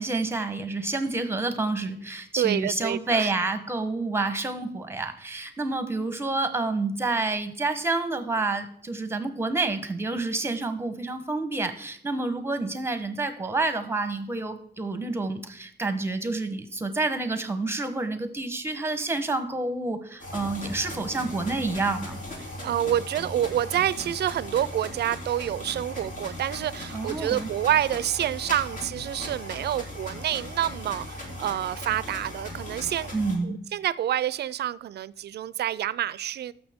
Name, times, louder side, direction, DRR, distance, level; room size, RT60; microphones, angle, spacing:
voice 1, 0.0-22.2 26.9-27.5 33.1-33.6, right 3 dB, 15° right, 0.9 m, -28 dB
voice 2, 2.4-3.3 22.6-33.2 33.4-36.5, right 11 dB, 65° right, 0.4 m, -28 dB
sound 1, 20.2-33.4, left 1 dB, 45° left, 2.9 m, -38 dB
14.0 x 6.4 x 3.6 m
wide cardioid pair, 155°, 18 cm